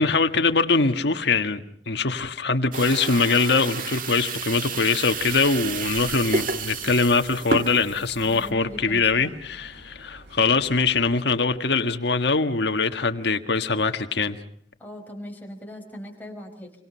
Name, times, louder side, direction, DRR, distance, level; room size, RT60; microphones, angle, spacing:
voice 1, 0.0-14.4, left 4 dB, 65° left, 1.6 m, -23 dB
sound 1, 2.7-8.5, right 4 dB, 50° right, 1.7 m, -31 dB
sound 2, 5.1-11.1, right 1 dB, 70° right, 5.4 m, -48 dB
voice 2, 8.3-9.3 14.8-16.7, equal, 10° left, 5.2 m, -39 dB
29.0 x 24.5 x 5.7 m
head